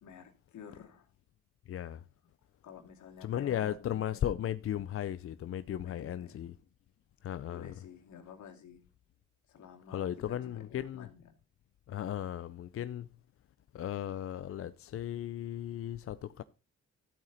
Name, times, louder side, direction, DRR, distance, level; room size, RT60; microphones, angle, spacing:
voice 1, 0.0-1.1 2.6-3.8 5.8-6.4 7.5-8.8 9.5-11.4, left 7 dB, 70° left, 2.5 m, -51 dB
voice 2, 1.7-2.0 3.2-6.5 7.2-7.7 9.9-11.1 11.9-13.1 13.7-16.4, left 11 dB, 50° left, 0.5 m, -36 dB
13.0 x 8.5 x 4.0 m
cardioid pair, 90°, 30 cm